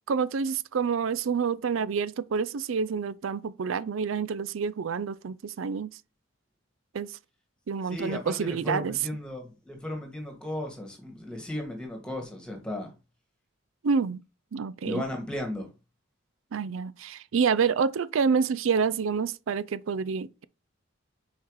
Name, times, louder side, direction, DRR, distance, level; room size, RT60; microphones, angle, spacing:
voice 1, 0.1-5.9 6.9-7.2 7.7-9.0 13.8-14.2 14.5-15.0 16.5-20.4, right 5 dB, 80° right, 0.4 m, -28 dB
voice 2, 7.9-12.9 14.8-15.7, left 1 dB, 5° left, 1.7 m, -35 dB
5.7 x 4.6 x 4.7 m
head